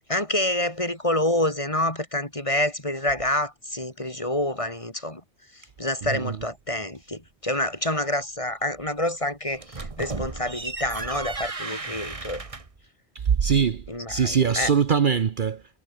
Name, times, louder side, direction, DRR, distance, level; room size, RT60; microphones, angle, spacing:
voice 1, 0.1-5.2 5.8-12.4 13.9-14.7, left 1 dB, 30° left, 4.2 m, -27 dB
sound 1, 9.5-12.8, right 3 dB, 30° right, 1.5 m, -34 dB
voice 2, 13.2-15.8, right 7 dB, 50° right, 0.9 m, -23 dB
omnidirectional pair, 1.1 m